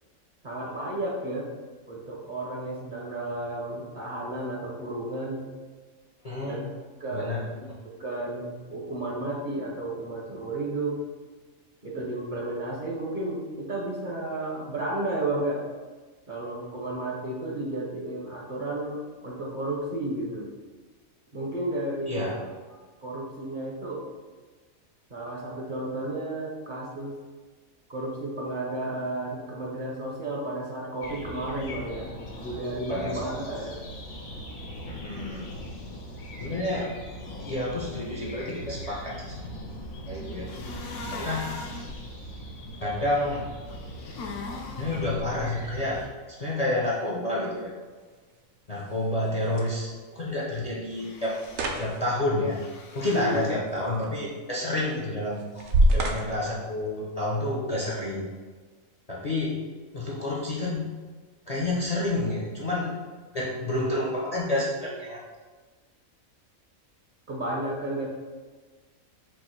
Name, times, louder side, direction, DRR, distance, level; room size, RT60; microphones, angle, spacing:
voice 1, 0.4-1.5 1.9-5.4 6.4-6.7 7.0-11.0 11.8-15.6 16.3-20.5 21.3-22.2 22.7-24.1 25.1-27.1 27.9-32.1 32.4-33.8 53.1-53.4 67.3-68.1, right 2 dB, 45° right, -3 dB, 0.8 m, -32 dB
voice 2, 6.2-6.6 7.1-7.5 22.1-22.4 32.9-33.2 34.9-35.5 36.4-36.9 37.4-39.6 40.1-40.5 41.1-41.5 42.8-43.5 44.8-47.7 48.7-51.4 51.8-52.6 52.9-58.3 59.1-59.6 59.9-60.9 61.5-62.9 63.3-65.2, left 1 dB, 40° left, -6 dB, 0.6 m, -29 dB
sound 1, 31.0-46.1, equal, 90° left, 1.4 m, -40 dB
sound 2, 40.5-41.9 43.7-45.1 50.9-51.7 52.5-53.5, left 3 dB, 70° left, 0.9 m, -40 dB
sound 3, 46.6-57.6, right 1 dB, 75° right, 1.0 m, -32 dB
4.5 x 2.6 x 4.4 m, 1.4 s
omnidirectional pair, 1.4 m